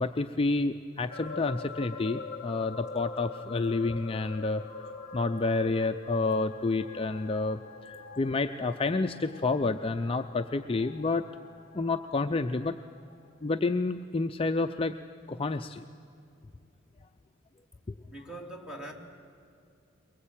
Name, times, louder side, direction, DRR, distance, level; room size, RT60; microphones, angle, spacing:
voice 1, 0.0-4.6 5.1-7.6 8.2-11.2 11.7-12.8 13.4-14.9 15.3-15.8 17.9-18.0, left 3 dB, 30° left, 7 dB, 0.5 m, -29 dB
sound 1, 1.1-12.9 13.3-13.4, left 4 dB, 45° left, 1.2 m, -44 dB
voice 2, 18.1-18.9, right 1 dB, 5° right, 1 dB, 2.6 m, -42 dB
22.5 x 21.0 x 8.8 m, 2.5 s
head